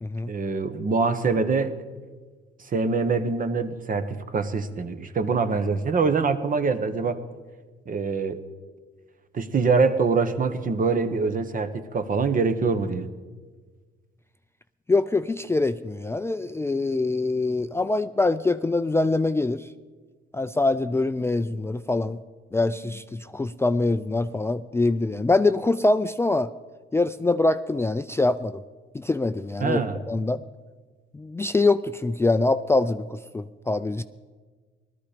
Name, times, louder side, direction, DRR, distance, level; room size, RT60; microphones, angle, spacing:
voice 1, 0.3-1.8 2.7-7.2 7.9-8.4 9.3-13.1 29.6-30.0, right 4 dB, 45° right, 10 dB, 1.1 m, -24 dB
voice 2, 14.9-19.7 20.3-22.2 22.5-26.5 26.9-28.6 28.9-29.8 30.1-30.4 31.1-34.0, left 2 dB, 15° left, 11 dB, 0.4 m, -24 dB
18.0 x 13.0 x 5.1 m, 1.4 s
cardioid pair, 90°, 20 cm